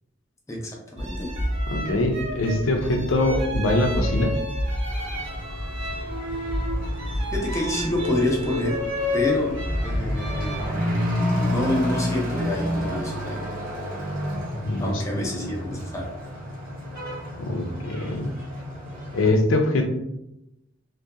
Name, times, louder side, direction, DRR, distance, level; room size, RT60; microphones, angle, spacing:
voice 1, 0.5-1.3 7.3-8.8 9.1-9.5 9.8-13.4 14.8-16.1, left 1 dB, 15° left, -2 dB, 0.4 m, -28 dB
sound 1, 1.0-10.7, left 1 dB, 65° right, 0.9 m, -29 dB
voice 2, 1.7-4.4 14.6-15.5 17.4-18.3 19.1-19.9, left 2 dB, 75° left, 4 dB, 0.4 m, -23 dB
Truck / Accelerating revving vroom, 4.9-19.3, equal, 45° right, 0.6 m, -31 dB
2.7 x 2.1 x 2.3 m, 0.89 s
head